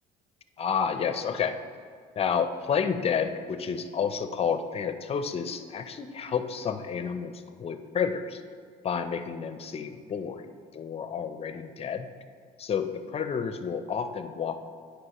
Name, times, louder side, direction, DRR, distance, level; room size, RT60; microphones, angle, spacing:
voice 1, 0.6-1.6 2.2-8.4 8.8-12.1 12.6-14.6, left 6 dB, 30° left, 10 dB, 0.5 m, -30 dB
9.6 x 4.8 x 3.0 m, 2.2 s
supercardioid pair, 90°, 19 cm